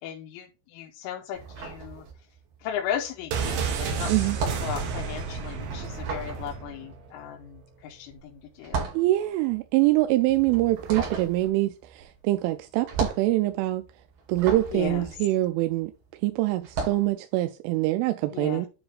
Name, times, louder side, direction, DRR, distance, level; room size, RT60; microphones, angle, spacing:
voice 1, 0.0-2.0 2.6-4.3 4.6-8.9 14.7-15.2 18.3-18.7, left 9 dB, 85° left, 3.3 m, -36 dB
sound 1, 1.3-2.6 2.8-16.0 16.6-17.1, right 5 dB, 50° right, 3.5 m, -35 dB
sound 2, 3.3-7.1 7.3-7.4, right 5 dB, 70° right, 3.4 m, -31 dB
voice 2, 8.9-13.8 14.3-15.9 16.2-18.7, right 17 dB, 90° right, 3.1 m, -24 dB
9.6 x 3.3 x 4.8 m
omnidirectional pair, 5.5 m